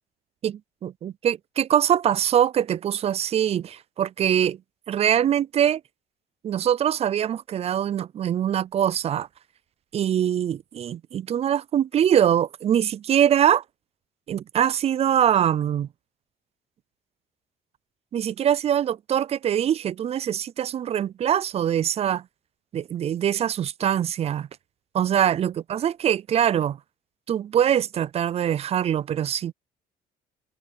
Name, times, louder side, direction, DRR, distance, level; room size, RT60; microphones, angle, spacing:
voice 1, 0.4-4.6 4.9-5.8 6.4-9.3 9.9-13.6 14.3-15.9 18.1-22.2 22.7-24.5 24.9-26.8 27.3-29.5, right 9 dB, 40° right, 0.4 m, -23 dB
cardioid pair, 110°, 17 cm